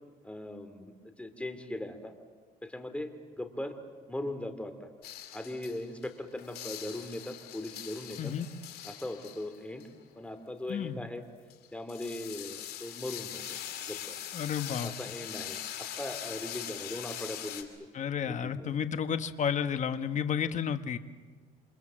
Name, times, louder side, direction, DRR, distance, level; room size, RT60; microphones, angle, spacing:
voice 1, 0.2-2.1 2.6-3.8 4.1-4.9 5.3-8.3 8.8-9.9 10.2-11.2 11.7-13.6 13.9-14.2 14.8-17.7 18.2-18.7, left 1 dB, 5° left, 8 dB, 2.9 m, -39 dB
sound 1, 5.0-6.1 6.4-10.4 11.5-17.6, left 11 dB, 70° left, 2.7 m, -42 dB
voice 2, 8.2-8.5 10.7-11.0 14.3-14.9 17.9-21.0, left 8 dB, 45° left, 10 dB, 1.4 m, -31 dB
28.5 x 26.5 x 7.7 m, 1.4 s
cardioid pair, 110°, 17 cm